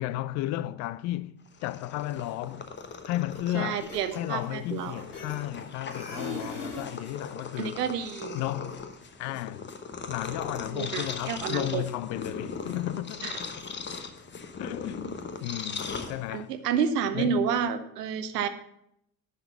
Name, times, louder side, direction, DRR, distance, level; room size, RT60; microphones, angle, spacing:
voice 1, 0.0-2.7 3.0-7.8 8.3-8.9 9.2-9.7 10.1-13.4 14.6-16.5 17.1-17.5, left 15 dB, 35° left, 0.4 m, -34 dB
Purr, 1.5-16.6, left 5 dB, 20° left, 1.0 m, -39 dB
sound 1, 3.3-3.5 3.8-5.6 5.9-7.0, left 3 dB, 75° left, 4.6 m, -39 dB
voice 2, 3.5-5.0 7.6-8.4 10.7-11.8 13.2-13.4 16.3-18.5, right 7 dB, 70° right, 0.9 m, -30 dB
10.0 x 6.6 x 5.4 m
figure-of-eight pair, 60°, 50 cm